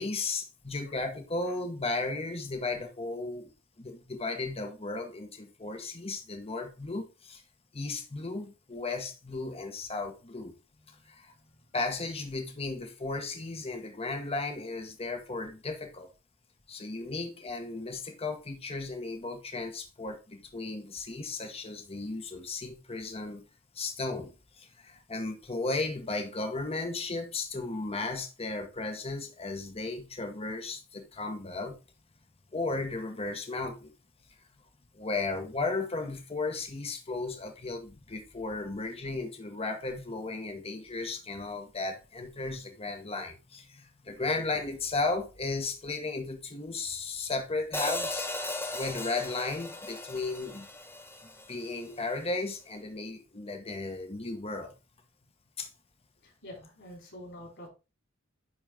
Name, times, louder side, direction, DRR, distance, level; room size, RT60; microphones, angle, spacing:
voice 1, 0.0-3.5 3.8-7.4 7.7-10.5 11.0-11.3 11.7-16.1 16.7-23.4 23.7-31.8 32.5-33.9 34.9-48.3 48.7-50.7 51.5-54.7 55.6-55.7, left 3 dB, 30° left, 1.1 m, -35 dB
voice 2, 10.7-11.6 56.2-57.7, left 1 dB, 60° left, 4.1 m, -48 dB
Hi-hat, 47.7-51.9, left 1 dB, 10° left, 0.8 m, -37 dB
9.8 x 4.0 x 3.6 m
head